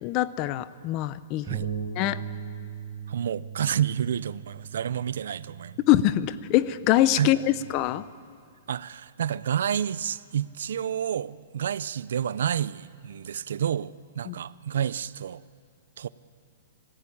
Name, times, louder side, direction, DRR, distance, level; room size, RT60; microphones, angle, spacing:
voice 1, 0.0-1.6 2.0-2.2 5.9-8.0 14.3-14.4, left 13 dB, 30° left, 16 dB, 0.6 m, -24 dB
Bass guitar, 1.5-7.7, right 7 dB, 15° right, 7.4 m, -39 dB
voice 2, 3.1-5.8 7.2-7.3 8.7-15.4 16.0-16.1, right 9 dB, 75° right, 18 dB, 0.6 m, -29 dB
29.5 x 15.0 x 8.6 m, 2.3 s
hypercardioid pair, 165°, 0 cm